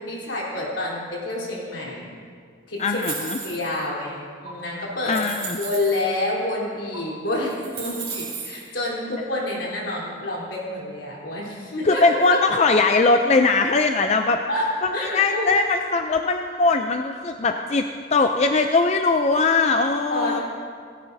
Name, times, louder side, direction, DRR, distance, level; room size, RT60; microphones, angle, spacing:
voice 1, 0.0-2.1 2.7-3.1 3.4-5.2 5.6-12.0 12.3-12.4 14.5-15.4 20.1-20.4, left 1 dB, 75° left, -5 dB, 3.7 m, -28 dB
voice 2, 2.8-3.4 5.0-5.6 11.8-14.4 15.0-17.8 18.1-20.4, left 3 dB, 35° left, 5 dB, 0.4 m, -20 dB
sound 1, 2.8-3.8 4.5-4.6 5.0-6.0 6.9-7.0 7.4-8.7, right 5 dB, 35° right, 2.7 m, -34 dB
18.0 x 16.5 x 2.7 m, 2.1 s
head